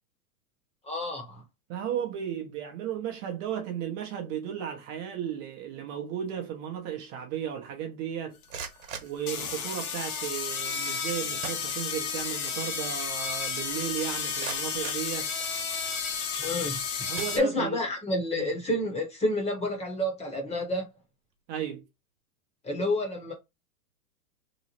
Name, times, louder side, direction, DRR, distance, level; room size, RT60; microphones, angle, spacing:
voice 1, 0.8-1.4 16.4-17.1 17.3-20.9 22.6-23.3, left 1 dB, 15° left, 1.0 m, -29 dB
voice 2, 1.7-8.4 9.0-15.3 17.0-17.8 18.4-18.5 21.5-21.9, right 9 dB, 35° right, 0.8 m, -35 dB
sound 1, 8.3-10.0 11.0-11.1 11.4-12.3 12.7-12.8 13.3-13.4 14.0-15.8 16.5-16.7 17.1-18.0, right 6 dB, 60° right, 1.1 m, -43 dB
sound 2, 8.4-8.5 9.2-17.4, left 6 dB, 70° left, 1.2 m, -32 dB
3.1 x 2.1 x 4.1 m
hypercardioid pair, 125°, 45 cm